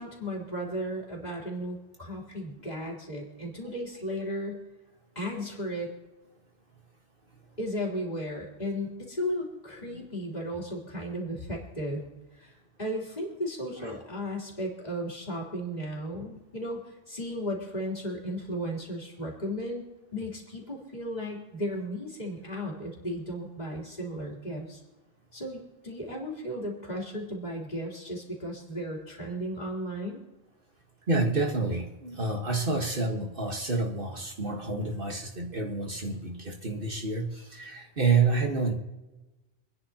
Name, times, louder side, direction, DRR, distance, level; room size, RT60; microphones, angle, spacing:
voice 1, 0.0-4.6 5.2-5.9 7.6-12.0 12.4-12.5 12.8-19.8 20.1-24.8 25.3-30.2, equal, 35° left, -2 dB, 3.5 m, -35 dB
voice 2, 31.1-38.8, right 3 dB, 50° right, 1 dB, 1.6 m, -28 dB
27.5 x 10.0 x 2.9 m, 1.1 s
omnidirectional pair, 1.2 m